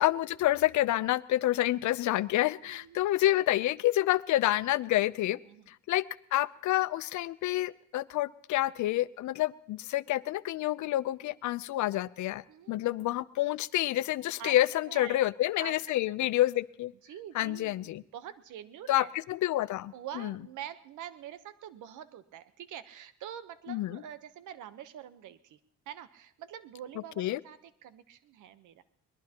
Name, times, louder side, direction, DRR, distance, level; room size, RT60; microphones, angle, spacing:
voice 1, 0.0-5.4 5.9-6.0 6.3-16.9 17.3-18.0 18.9-20.3 23.7-24.0 27.2-27.4, left 15 dB, 75° left, 18 dB, 0.6 m, -28 dB
voice 2, 2.6-3.0 5.4-5.7 11.2-11.4 12.5-13.1 14.4-15.3 15.6-16.1 17.0-19.1 19.9-25.6 25.9-28.8, right 10 dB, 80° right, 13 dB, 1.0 m, -46 dB
22.0 x 21.0 x 2.9 m, 0.76 s
cardioid pair, 90°, 30 cm